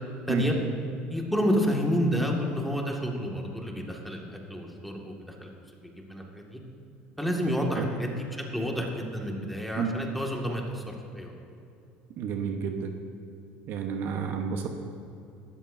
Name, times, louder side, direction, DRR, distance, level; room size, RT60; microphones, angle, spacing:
voice 1, 1.1-5.5 5.8-6.6 7.2-8.3 8.5-11.3, equal, ahead, -1 dB, 1.9 m, -29 dB
voice 2, 12.2-12.9 13.7-14.7, right 7 dB, 60° right, 4 dB, 1.0 m, -30 dB
17.0 x 13.0 x 2.7 m, 2.7 s
supercardioid pair, 115°, 4 cm